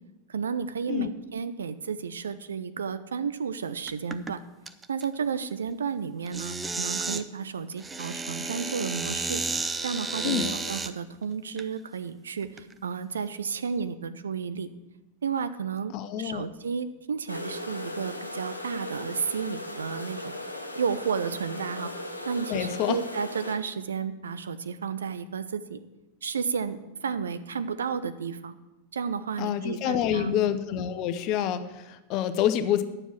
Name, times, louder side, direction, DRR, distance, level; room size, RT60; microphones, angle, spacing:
voice 1, 0.3-4.4 4.9-9.4 9.8-14.7 15.2-15.9 16.2-20.4 20.8-21.9 22.3-25.8 26.2-28.6 28.9-30.3, right 6 dB, 70° right, 12 dB, 0.5 m, -32 dB
sound 1, 3.9-4.3 4.7-5.0 6.3-7.2 7.8-10.9 11.6-11.7 12.4-12.7, right 3 dB, 15° right, 0.5 m, -32 dB
voice 2, 15.9-16.5 22.5-23.0 29.4-32.8, left 10 dB, 40° left, 11 dB, 0.7 m, -27 dB
sound 2, 17.3-23.6, left 1 dB, 85° left, 0.8 m, -37 dB
9.8 x 7.2 x 6.0 m, 1.0 s
figure-of-eight pair, 90°, 0 cm